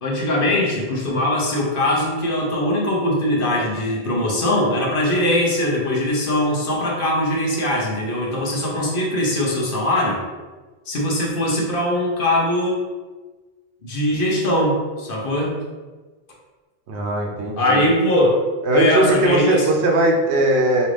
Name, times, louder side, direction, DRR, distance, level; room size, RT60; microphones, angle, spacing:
voice 1, 0.0-10.2 10.9-12.8 13.8-15.6 17.6-18.4 18.7-19.7, left 1 dB, 55° left, -2 dB, 1.0 m, -21 dB
voice 2, 16.9-17.8 18.6-20.9, right 1 dB, 80° right, 1 dB, 1.0 m, -19 dB
5.4 x 2.5 x 3.2 m, 1.3 s
omnidirectional pair, 1.1 m